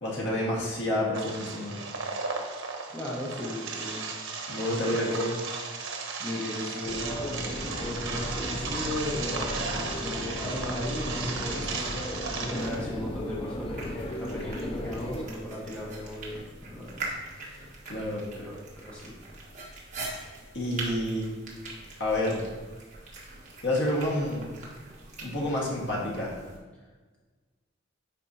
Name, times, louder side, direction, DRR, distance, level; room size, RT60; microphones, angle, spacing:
voice 1, 0.0-1.8 4.5-5.3 7.3-7.4 17.9-18.3 20.5-21.3 22.0-22.5 23.6-24.5 25.2-26.4, left 1 dB, 60° left, -4 dB, 1.8 m, -29 dB
sound 1, 1.1-12.8, right 4 dB, 75° right, 1.0 m, -35 dB
voice 2, 2.9-4.1 4.4-5.1 6.2-12.0 12.4-17.6 18.4-19.1, left 1 dB, 5° left, -6 dB, 1.2 m, -36 dB
sound 2, 6.8-15.3, left 1 dB, 30° left, 0.5 m, -36 dB
sound 3, 12.6-26.6, right 2 dB, 40° right, 1.5 m, -43 dB
10.5 x 4.6 x 2.8 m, 1.3 s
head